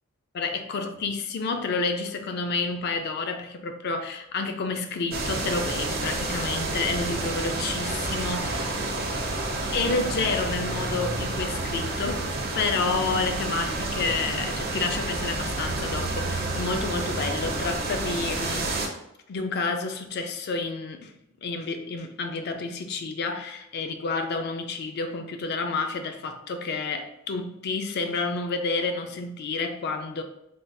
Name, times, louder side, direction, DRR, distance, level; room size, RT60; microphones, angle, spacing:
voice 1, 0.3-8.8 9.7-18.7 19.3-21.1 21.4-30.2, left 4 dB, 55° left, 0.4 m, -30 dB
sound 1, 5.1-18.9, right 2 dB, 50° right, 0.5 m, -29 dB
3.4 x 2.3 x 2.6 m
head